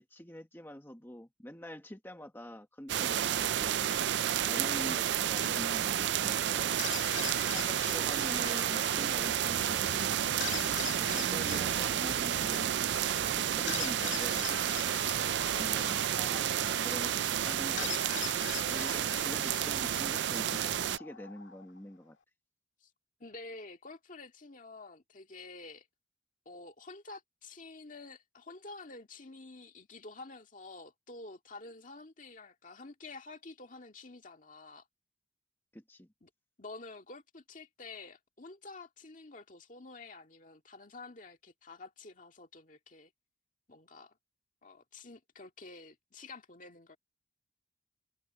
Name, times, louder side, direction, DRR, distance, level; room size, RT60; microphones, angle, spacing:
voice 1, 0.0-3.8 4.4-6.8 7.5-12.9 13.1-14.9 15.5-22.2 35.7-36.1, equal, 10° left, 1.4 m, -46 dB
sound 1, 2.9-21.0, right 10 dB, 65° right, 0.4 m, -31 dB
voice 2, 4.4-4.8 15.4-16.1 22.8-22.9 23.2-25.9 26.5-34.9 36.2-36.3 36.6-43.1 43.7-44.1 44.6-47.0, left 3 dB, 45° left, 2.0 m, -49 dB
sound 2, 6.6-21.9, left 10 dB, 80° left, 2.0 m, -44 dB
head